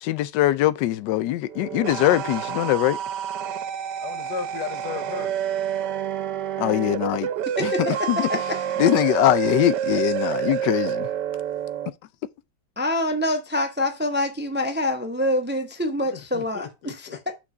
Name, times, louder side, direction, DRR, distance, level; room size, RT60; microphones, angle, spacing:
voice 1, 0.0-3.0 6.6-7.3 7.6-7.7 8.1-8.3 8.8-11.1, left 14 dB, 90° left, 1.2 m, -22 dB
sound 1, 1.5-11.9, right 9 dB, 85° right, 1.2 m, -28 dB
voice 2, 4.0-5.3 16.1-17.3, left 6 dB, 75° left, 1.6 m, -35 dB
voice 3, 7.6-8.6 12.8-17.3, left 1 dB, 10° right, 0.6 m, -26 dB
6.0 x 3.9 x 5.5 m
omnidirectional pair, 1.8 m